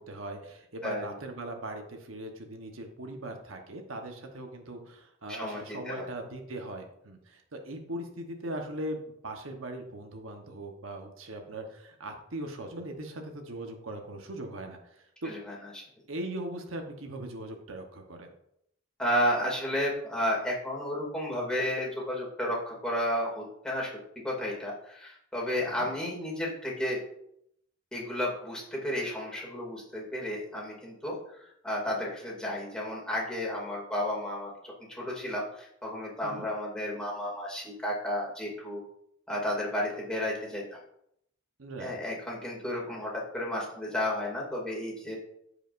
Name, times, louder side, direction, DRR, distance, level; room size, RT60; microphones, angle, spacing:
voice 1, 0.0-15.3 16.1-18.3 25.6-25.9 36.2-36.5 41.6-41.9, right 1 dB, 80° right, 3 dB, 1.1 m, -40 dB
voice 2, 0.8-1.1 5.3-6.1 15.2-15.8 19.0-23.9 24.2-27.0 27.9-34.5 34.9-38.8 39.3-40.8 41.8-45.2, left 1 dB, 5° left, -4 dB, 2.5 m, -32 dB
14.5 x 5.0 x 2.6 m, 0.74 s
head